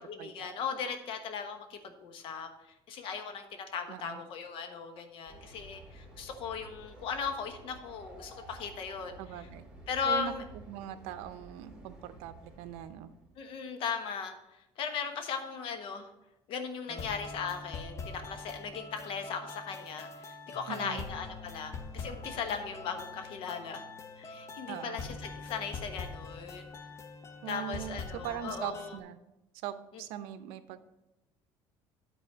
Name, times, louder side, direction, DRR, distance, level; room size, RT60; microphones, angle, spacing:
voice 1, 0.1-2.5 2.9-9.2 9.9-10.4 13.4-16.1 16.5-23.8 24.2-26.7 27.5-29.0, left 6 dB, 65° left, 7 dB, 1.2 m, -38 dB
voice 2, 3.9-4.2 9.2-9.6 10.0-10.3 10.7-13.1 20.7-21.0 24.7-25.1 27.4-29.2 29.6-30.8, right 10 dB, 90° right, 11 dB, 0.6 m, -41 dB
Train, 5.3-13.4, right 2 dB, 5° right, 2.7 m, -52 dB
sound 1, 16.9-29.0, left 4 dB, 30° left, 0.8 m, -44 dB
9.3 x 4.1 x 6.1 m, 0.92 s
cardioid pair, 120°, 10 cm